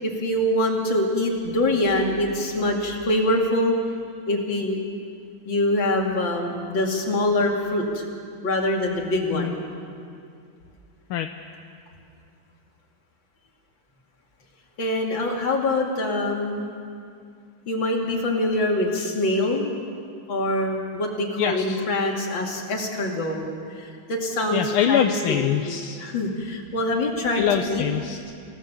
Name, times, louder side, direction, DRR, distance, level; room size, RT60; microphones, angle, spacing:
voice 1, 0.0-3.8 4.3-4.8 5.4-8.0 8.4-9.6 14.8-16.7 17.7-19.7 20.3-23.5 23.7-25.5 26.0-27.8, left 1 dB, 65° left, 0 dB, 3.3 m, -24 dB
voice 2, 21.4-21.8 24.5-26.0 27.3-28.3, left 10 dB, 85° left, 6 dB, 1.6 m, -24 dB
29.0 x 17.0 x 7.1 m, 2.4 s
omnidirectional pair, 2.3 m